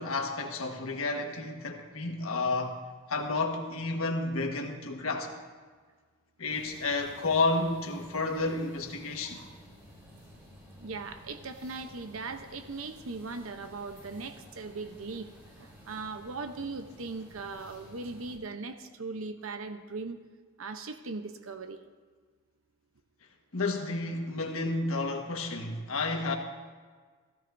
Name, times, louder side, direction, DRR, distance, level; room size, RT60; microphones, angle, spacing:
voice 1, 0.0-2.8 3.1-5.3 6.4-9.4 23.5-26.3, left 3 dB, 80° left, 1.5 m, -31 dB
sound 1, 6.5-18.4, equal, 15° right, 3.9 m, -53 dB
voice 2, 10.8-15.3 15.6-20.2 20.6-21.8, right 3 dB, 75° right, 0.8 m, -39 dB
16.5 x 15.0 x 2.7 m
head